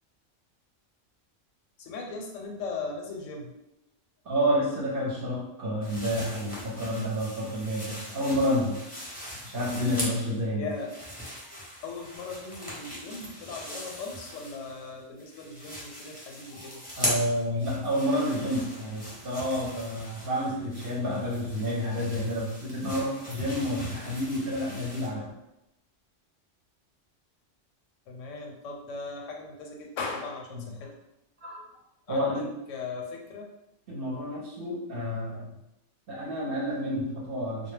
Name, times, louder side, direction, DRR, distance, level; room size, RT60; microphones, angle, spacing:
voice 1, 1.8-3.5 10.6-10.9 11.2-17.0 28.1-30.9 31.4-31.6 32.1-32.4 32.7-33.5, left 4 dB, 85° left, 1 dB, 0.9 m, -38 dB
voice 2, 4.2-8.8 9.4-10.7 17.0-25.3 30.5-30.7 31.4-31.6 32.1-32.5 33.9-35.6 36.1-37.7, equal, 55° right, -4 dB, 0.8 m, -29 dB
sound 1, 5.8-10.4 10.7-14.9 15.2-25.1, equal, 10° left, 0.5 m, -39 dB
2.2 x 2.0 x 3.2 m, 0.87 s
omnidirectional pair, 1.2 m